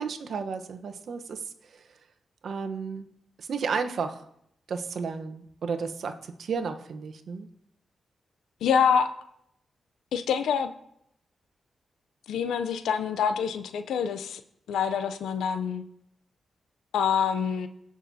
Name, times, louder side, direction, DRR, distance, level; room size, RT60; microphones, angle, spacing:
voice 1, 0.0-1.9 2.4-3.1 3.4-4.2 4.7-7.5, right 5 dB, 70° right, 7 dB, 1.0 m, -33 dB
voice 2, 8.6-9.1 10.1-10.7 12.3-14.4 14.7-15.8 16.9-17.7, left 7 dB, 80° left, 10 dB, 0.6 m, -26 dB
16.5 x 6.2 x 2.8 m, 0.74 s
supercardioid pair, 40°, 0 cm